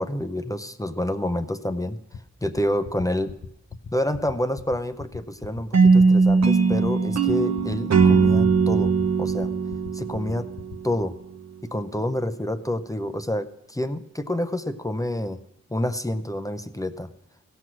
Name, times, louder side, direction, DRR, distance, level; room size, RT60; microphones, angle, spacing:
voice 1, 0.0-2.0 2.4-3.3 3.9-9.5 9.9-10.5 10.8-11.2 11.7-15.4 15.7-17.1, left 1 dB, 10° left, 8 dB, 0.5 m, -28 dB
sound 1, 2.1-11.0, left 6 dB, 60° left, 0.7 m, -39 dB
sound 2, 5.7-10.9, right 4 dB, 60° right, 0.8 m, -20 dB
16.5 x 6.1 x 6.1 m, 0.86 s
wide cardioid pair, 85°, 30 cm